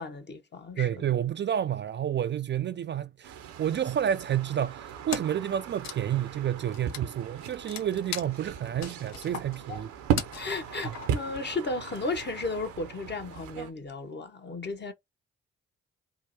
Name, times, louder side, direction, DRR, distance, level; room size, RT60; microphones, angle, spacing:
voice 1, 0.0-1.1 9.7-9.8 10.3-14.9, left 3 dB, 35° left, 1.0 m, -34 dB
voice 2, 0.8-9.9, right 10 dB, 40° right, 0.4 m, -30 dB
sound 1, 3.2-13.7, right 9 dB, 75° right, 0.7 m, -37 dB
Wood, 5.1-5.5 5.7-11.3, left 8 dB, 65° left, 0.6 m, -39 dB
3.5 x 2.1 x 2.8 m
hypercardioid pair, 45°, 29 cm